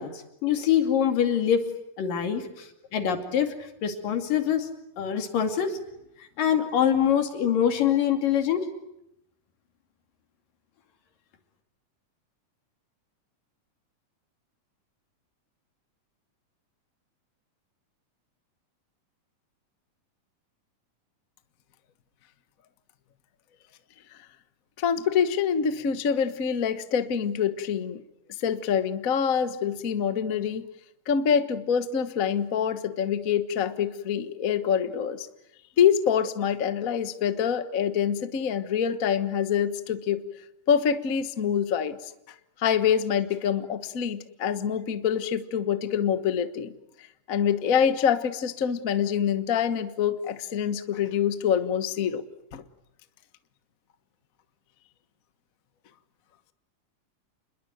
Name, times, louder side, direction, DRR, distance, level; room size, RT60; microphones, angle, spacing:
voice 1, 0.0-1.6 2.0-3.5 3.8-4.7 5.0-5.8 6.4-8.6, left 9 dB, 85° left, 6 dB, 4.2 m, -24 dB
voice 2, 24.8-28.0 28.4-30.7 31.1-35.3 35.8-40.2 40.7-42.1 42.6-46.7 47.3-52.2 52.5-52.6, left 8 dB, 60° left, 11 dB, 0.8 m, -25 dB
28.5 x 21.5 x 9.3 m, 0.82 s
omnidirectional pair, 3.8 m